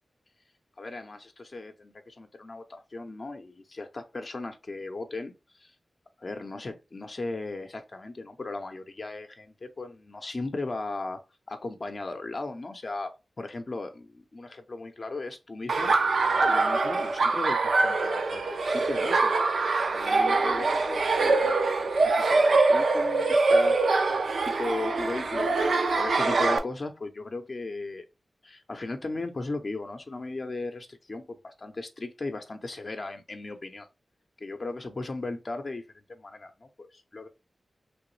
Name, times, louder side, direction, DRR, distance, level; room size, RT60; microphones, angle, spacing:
voice 1, 0.8-5.8 6.2-11.2 11.5-13.1 13.4-21.6 22.0-24.2 24.4-28.1 28.4-33.9 34.4-37.3, left 3 dB, 45° left, 0.5 m, -37 dB
Laughter, 15.7-26.6, right 3 dB, 85° right, 0.5 m, -24 dB
3.1 x 2.9 x 3.1 m
wide cardioid pair, 105°, 0 cm